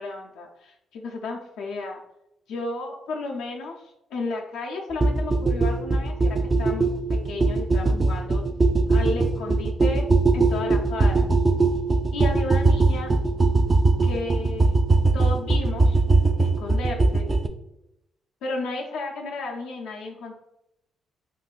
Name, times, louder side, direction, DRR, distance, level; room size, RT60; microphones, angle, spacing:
voice 1, 0.0-2.0 2.5-8.4 8.9-10.1 10.3-11.3 12.1-13.1 14.0-14.7 15.0-16.0 16.4-17.3 18.4-20.3, left 3 dB, 85° left, 0 dB, 0.4 m, -33 dB
sound 1, 5.0-17.5, right 3 dB, 25° right, 0.3 m, -20 dB
3.9 x 2.2 x 2.4 m, 0.83 s
cardioid pair, 90°, 0 cm